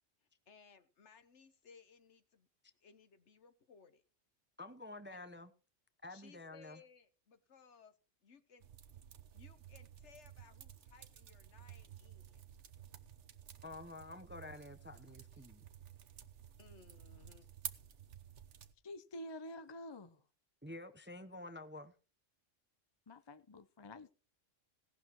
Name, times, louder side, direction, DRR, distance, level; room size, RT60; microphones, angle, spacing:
voice 1, 0.2-2.5 2.8-4.0 5.1-5.2 6.1-8.0 8.2-8.7 8.9-9.0 9.3-12.4 16.6-17.5, left 5 dB, 65° left, 1.4 m, -62 dB
voice 2, 4.6-5.5 6.0-6.8 13.6-15.6 20.6-21.9, left 2 dB, 10° right, 0.6 m, -49 dB
sound 1, 8.6-18.7, right 9 dB, 70° right, 1.2 m, -53 dB
voice 3, 18.8-20.2 23.1-24.1, left 1 dB, 30° left, 0.5 m, -49 dB
17.0 x 11.5 x 3.0 m
omnidirectional pair, 1.3 m